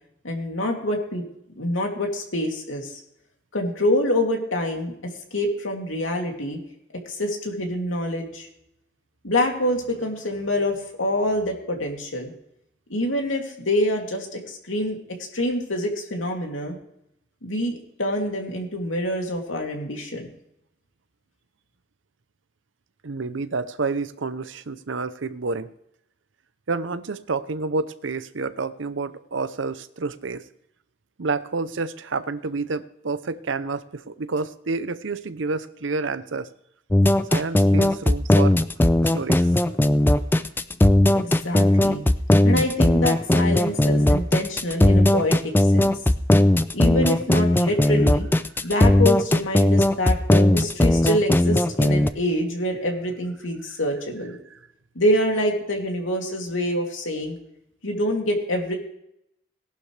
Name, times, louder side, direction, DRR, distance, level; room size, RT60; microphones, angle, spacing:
voice 1, 0.2-1.2 1.6-2.9 3.5-4.9 5.3-6.6 7.1-8.5 9.2-12.3 12.9-15.0 15.3-16.8 17.4-20.3 41.1-42.0 42.4-45.9 46.7-48.3 48.6-54.4 54.9-57.4 57.8-58.7, left 1 dB, 85° left, 1 dB, 2.9 m, -26 dB
voice 2, 23.0-25.7 26.7-30.4 31.2-36.5 37.3-38.6 39.1-39.5, right 3 dB, 75° right, 14 dB, 0.7 m, -29 dB
sound 1, 36.9-52.1, left 1 dB, 10° left, 0.4 m, -18 dB
18.0 x 11.5 x 3.4 m, 0.77 s
head